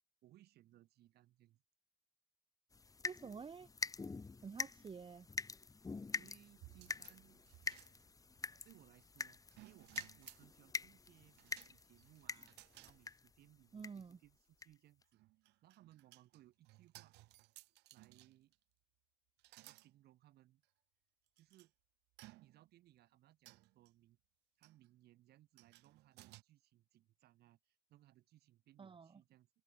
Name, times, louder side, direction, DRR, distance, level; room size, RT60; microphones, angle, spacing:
voice 1, 0.2-1.6 6.2-7.4 8.5-12.5 12.8-15.2 15.6-17.2 17.9-18.5 19.6-20.6 21.4-21.7 22.4-24.2 24.6-29.5, right 14 dB, 70° right, 3.9 m, -67 dB
sound 1, 2.7-13.4 13.8-14.1 14.6-14.7 15.0-15.1, left 4 dB, 20° left, 1.4 m, -46 dB
voice 2, 3.0-3.7 4.4-5.3 13.7-14.2 28.8-29.2, right 5 dB, 30° right, 2.7 m, -50 dB
sound 2, 6.6-8.4 9.5-10.5 11.4-13.0 13.4-13.5 15.0-18.6 19.4-19.9 20.6-20.7 21.4-21.7 22.2-22.8 23.5-23.9 24.6-24.9 25.6-26.4, right 20 dB, 90° right, 5.7 m, -60 dB
open air
cardioid pair, 110°, 17 cm